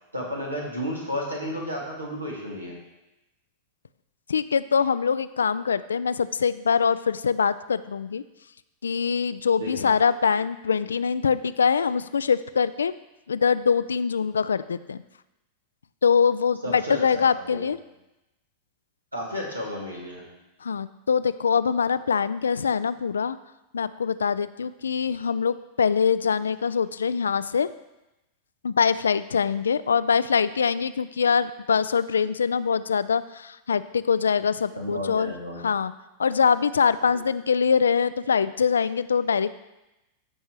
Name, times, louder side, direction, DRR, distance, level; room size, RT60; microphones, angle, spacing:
voice 1, 0.1-2.8 9.6-9.9 16.6-17.7 19.1-20.2 34.7-35.6 37.1-37.2, equal, 85° right, -3 dB, 2.2 m, -32 dB
voice 2, 4.3-8.2 8.8-12.9 13.3-15.0 16.0-17.8 20.6-23.4 23.7-27.7 28.6-35.3 35.6-35.9 36.2-39.5, left 6 dB, 70° left, 15 dB, 0.3 m, -23 dB
14.5 x 5.4 x 3.1 m, 0.96 s
figure-of-eight pair, 90°, 0 cm